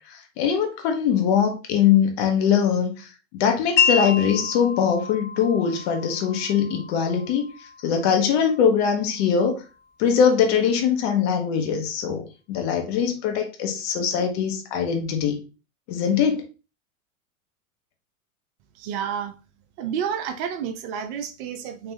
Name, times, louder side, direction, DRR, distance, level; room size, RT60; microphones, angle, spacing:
voice 1, 0.1-3.1 3.3-7.5 7.8-9.6 10.0-15.4 15.9-16.4, left 7 dB, 50° left, 1.2 m, -22 dB
Wind chime, 3.8-9.8, left 6 dB, 25° left, 0.5 m, -29 dB
voice 2, 18.7-19.3 19.8-21.9, right 8 dB, 45° right, 0.7 m, -30 dB
4.6 x 3.2 x 2.7 m
figure-of-eight pair, 90°, 42 cm